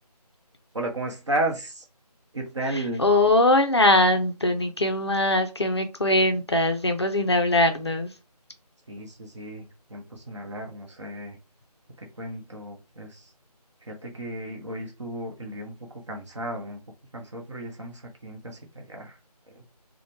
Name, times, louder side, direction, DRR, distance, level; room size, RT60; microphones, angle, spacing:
voice 1, 0.7-1.9 2.3-3.1 8.9-11.4 12.0-13.3 13.8-16.8 17.1-19.2 19.5-19.6, right 1 dB, 45° right, 0.8 m, -34 dB
voice 2, 2.7-8.1, left 1 dB, 40° left, 0.4 m, -21 dB
3.0 x 2.1 x 2.9 m
figure-of-eight pair, 160°, 21 cm